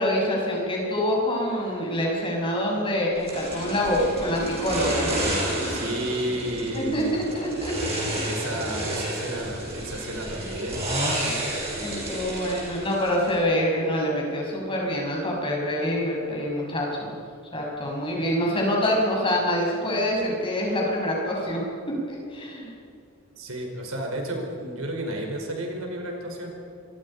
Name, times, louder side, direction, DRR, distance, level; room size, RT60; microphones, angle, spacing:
voice 1, 0.0-5.1 6.7-8.3 8.8-8.9 11.2-11.3 11.8-17.1 17.5-22.7, equal, 25° left, -2 dB, 6.3 m, -26 dB
sound 1, 3.3-13.4, right 1 dB, 25° right, 7.8 m, -30 dB
voice 2, 5.7-7.2 8.2-10.9 23.4-26.5, right 1 dB, 70° right, 2 dB, 5.1 m, -32 dB
26.5 x 23.0 x 5.6 m, 2.5 s
head